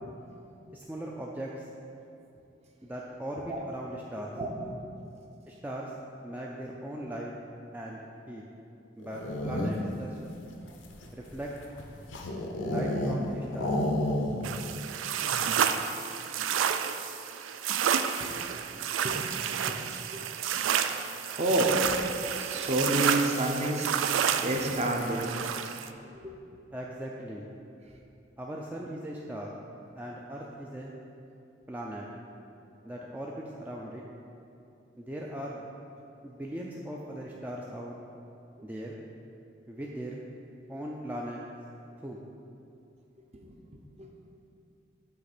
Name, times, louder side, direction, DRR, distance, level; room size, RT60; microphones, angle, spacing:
voice 1, 0.7-1.7 2.8-4.3 5.5-5.9 6.2-7.3 7.7-8.4 9.0-10.2 11.1-11.5 12.6-13.7 26.7-27.5 28.4-29.5 29.9-30.9 31.7-32.1 32.8-34.0 35.0-35.7 36.2-38.0 38.6-39.0 39.7-40.2 40.7-41.4 42.0-42.2, right 1 dB, 10° right, -3 dB, 0.3 m, -39 dB
voice 2, 4.4-4.9 18.2-18.6 19.0-19.2 19.6-20.2 21.3-21.9 22.2-25.3 26.1-26.3 43.3-43.5 44.0-44.1, right 1 dB, 35° right, 1 dB, 0.7 m, -30 dB
sound 1, 9.0-10.0 10.7-13.2 13.5-14.6 14.9-15.0 15.3-15.6, left 1 dB, 80° left, 0.7 m, -31 dB
sound 2, 14.4-25.9, right 8 dB, 90° right, 0.3 m, -30 dB
7.8 x 3.2 x 5.9 m, 2.7 s
head